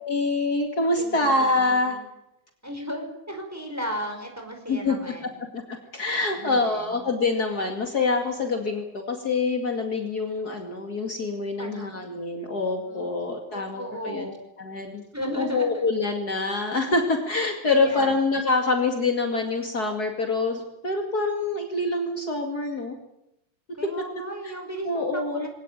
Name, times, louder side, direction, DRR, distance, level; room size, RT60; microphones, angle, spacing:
voice 1, 0.0-2.0 4.7-5.0 5.5-5.6 5.9-14.3 14.6-15.0 15.4-23.0 23.7-23.9 24.4-24.5 24.8-25.5, left 3 dB, 45° left, 3 dB, 2.8 m, -25 dB
voice 2, 1.0-2.0 2.6-5.3 6.3-7.1 11.6-12.0 12.9-13.2 13.5-14.3 15.1-15.8 17.7-18.1 23.8-25.5, equal, 5° right, 3 dB, 5.1 m, -35 dB
23.0 x 18.5 x 9.0 m, 0.85 s
omnidirectional pair, 2.3 m